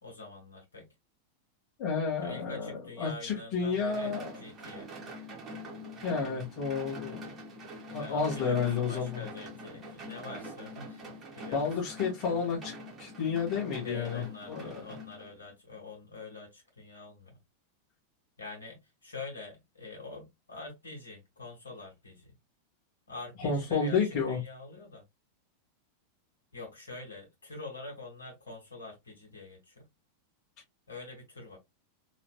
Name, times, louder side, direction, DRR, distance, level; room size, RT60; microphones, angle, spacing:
voice 1, 0.0-0.9 2.2-4.9 8.0-11.6 13.8-17.4 18.4-22.3 23.1-24.0 24.3-25.0 26.5-29.9 30.9-31.6, left 3 dB, 70° left, 1.5 m, -45 dB
voice 2, 1.8-2.7 3.0-4.4 6.0-7.3 7.9-9.2 11.5-14.8 23.4-24.4, left 5 dB, 40° left, 2.0 m, -31 dB
sound 1, 3.9-15.5, equal, 25° right, 1.6 m, -44 dB
4.0 x 3.3 x 2.2 m
figure-of-eight pair, 90°, 0 cm